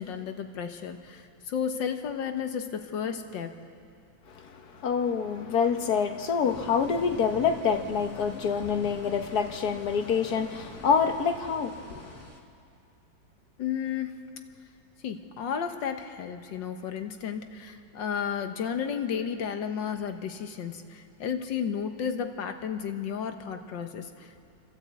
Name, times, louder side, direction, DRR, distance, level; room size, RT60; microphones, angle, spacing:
voice 1, 0.0-3.6 13.6-14.2 15.0-24.4, left 7 dB, 75° left, 1.8 m, -33 dB
voice 2, 4.3-12.2, left 6 dB, 60° left, 1.5 m, -27 dB
sound 1, 6.4-12.4, equal, 10° right, 2.0 m, -46 dB
28.5 x 12.5 x 8.2 m
omnidirectional pair, 2.0 m